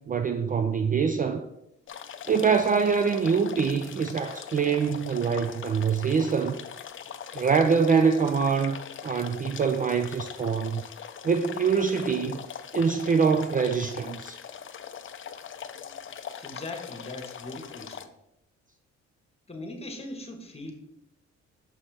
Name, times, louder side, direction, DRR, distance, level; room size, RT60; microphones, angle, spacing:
voice 1, 0.1-1.5 2.3-6.6 7.3-10.8 11.2-12.4 12.7-14.4, right 6 dB, 30° right, 0.4 m, -24 dB
sound 1, 1.9-18.1, left 8 dB, 40° left, 0.5 m, -41 dB
voice 2, 16.4-18.1 19.5-20.7, left 2 dB, 20° left, 1.3 m, -40 dB
6.1 x 5.5 x 3.3 m
cardioid pair, 90°, 30 cm